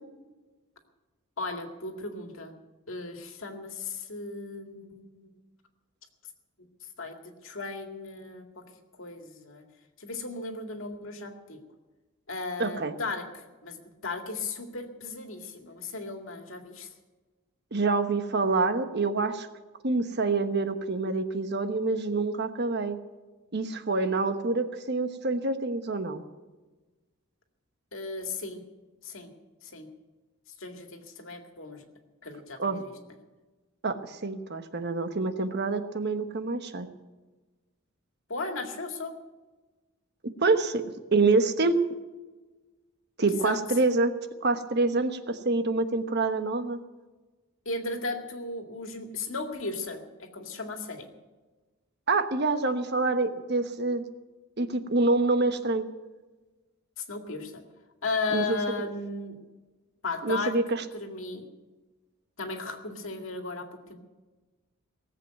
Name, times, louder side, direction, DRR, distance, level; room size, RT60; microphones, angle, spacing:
voice 1, 1.4-2.5 2.9-5.3 7.0-8.6 9.0-9.6 10.0-11.6 12.3-16.9 27.9-28.6 29.0-29.3 29.6-29.9 30.6-31.8 32.2-32.9 38.3-39.2 43.2-43.6 47.7-51.1 57.0-57.6 58.0-59.4 60.0-60.6 60.9-61.4 62.4-64.0, left 3 dB, 65° left, 4 dB, 2.2 m, -36 dB
voice 2, 12.6-12.9 17.7-19.5 19.8-23.0 23.5-26.2 32.6-32.8 33.8-36.9 40.4-40.8 41.1-41.8 43.2-44.1 44.4-46.8 52.1-54.0 54.6-55.8 58.3-58.6 60.2-60.8, right 3 dB, 50° right, 8 dB, 1.1 m, -26 dB
18.5 x 8.0 x 9.2 m, 1.2 s
head